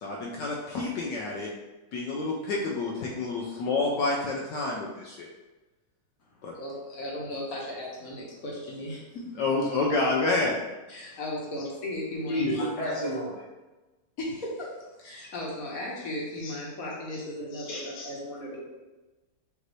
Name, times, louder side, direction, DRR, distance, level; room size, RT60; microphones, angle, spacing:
voice 1, 0.0-1.5 1.9-5.3 6.4-6.5 9.4-10.6, left 3 dB, 75° left, -2 dB, 1.2 m, -28 dB
voice 2, 6.3-9.2 10.9-12.9 14.2-14.7 15.0-18.6, left 1 dB, 50° left, -4 dB, 1.3 m, -36 dB
voice 3, 12.3-13.4 16.4-16.5 17.5-18.1, left 1 dB, 25° left, -5 dB, 0.8 m, -31 dB
5.2 x 2.7 x 3.1 m, 1.1 s
omnidirectional pair, 2.1 m